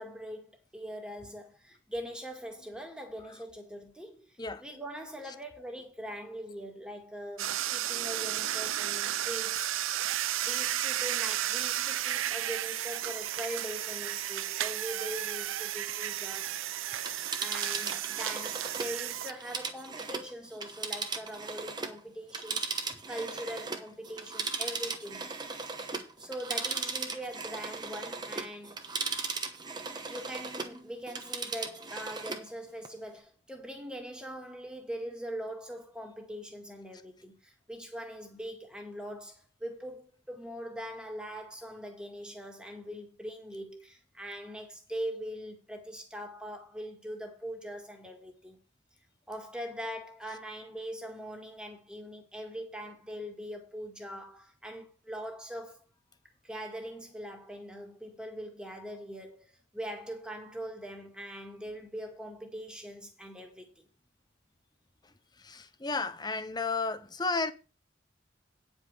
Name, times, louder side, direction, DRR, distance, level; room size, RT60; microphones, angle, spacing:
voice 1, 0.0-9.7 10.4-16.6 17.4-25.3 26.2-28.8 29.8-48.6 49.3-55.8 56.4-63.9, equal, 5° right, 1.9 m, -42 dB
sound 1, 7.4-19.3, right 12 dB, 90° right, 0.5 m, -33 dB
Telephone, 16.9-22.0 22.3-30.8 31.1-32.5 32.8-32.9, right 4 dB, 20° right, 1.0 m, -37 dB
voice 2, 65.0-67.5, left 3 dB, 20° left, 0.7 m, -33 dB
9.7 x 5.3 x 6.5 m
head